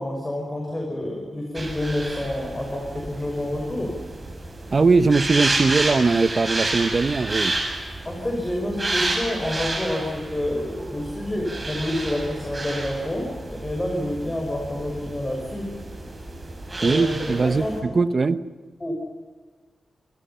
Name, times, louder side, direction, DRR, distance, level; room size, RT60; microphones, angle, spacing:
voice 1, 0.0-4.0 8.0-15.7 16.7-17.7 18.8-18.9, left 1 dB, 15° left, 0 dB, 6.1 m, -28 dB
sound 1, 1.6-17.8, right 2 dB, 20° right, 7.4 m, -30 dB
voice 2, 4.7-7.5 16.8-18.4, right 4 dB, 35° right, 12 dB, 1.1 m, -20 dB
28.5 x 28.0 x 5.8 m, 1.4 s
wide cardioid pair, 165°, 0 cm